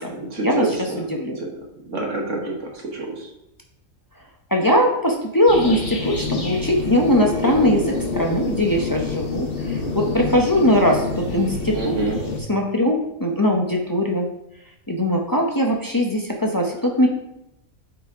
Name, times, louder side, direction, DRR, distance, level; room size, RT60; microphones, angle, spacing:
voice 1, 0.0-1.0 1.4-1.6 1.9-3.3 11.7-12.2, right 2 dB, 60° right, 1 dB, 1.5 m, -28 dB
voice 2, 1.0-1.4 4.5-11.9 12.5-14.3 14.9-17.1, equal, 20° left, 1 dB, 0.6 m, -20 dB
sound 1, 5.5-12.4, left 3 dB, 45° left, 1.2 m, -27 dB
8.8 x 4.9 x 3.6 m, 0.85 s
omnidirectional pair, 1.5 m